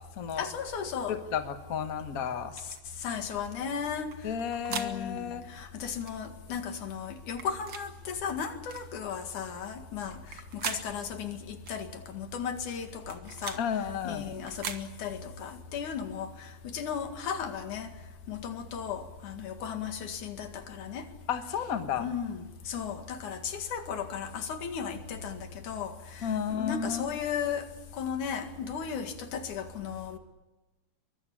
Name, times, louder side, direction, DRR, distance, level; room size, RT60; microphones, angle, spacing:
voice 1, 0.4-1.2 3.0-4.1 4.7-10.2 10.5-17.9 18.3-21.1 22.0-27.7 27.9-30.2, left 7 dB, 85° left, 6 dB, 3.5 m, -36 dB
voice 2, 1.1-2.5 4.2-5.4 13.6-14.3 21.3-22.1 26.2-27.1, left 8 dB, 40° left, 7 dB, 1.3 m, -32 dB
sound 1, 2.6-2.8 4.1-4.9 6.0-6.2 7.3-7.9 8.7-8.9 10.1-10.8 11.7-11.8 12.8-13.6 14.4-14.8, right 7 dB, 50° right, 1.9 m, -39 dB
23.5 x 21.5 x 8.5 m, 1.1 s
omnidirectional pair, 3.4 m